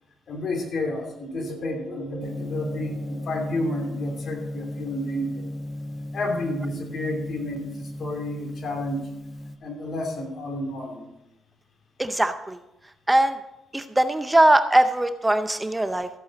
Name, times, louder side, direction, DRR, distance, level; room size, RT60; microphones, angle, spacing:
voice 1, 0.3-5.5 6.1-9.1 9.6-11.1, left 1 dB, 55° left, 3 dB, 2.7 m, -31 dB
sound 1, 1.2-4.2, left 1 dB, 80° left, 4.0 m, -41 dB
Gong, 2.2-9.6, left 1 dB, 40° left, 1.0 m, -35 dB
voice 2, 12.0-12.6 13.1-13.4 13.7-16.1, right 1 dB, 10° right, 10 dB, 0.6 m, -21 dB
14.0 x 8.3 x 4.1 m, 0.90 s
cardioid pair, 90°, 0 cm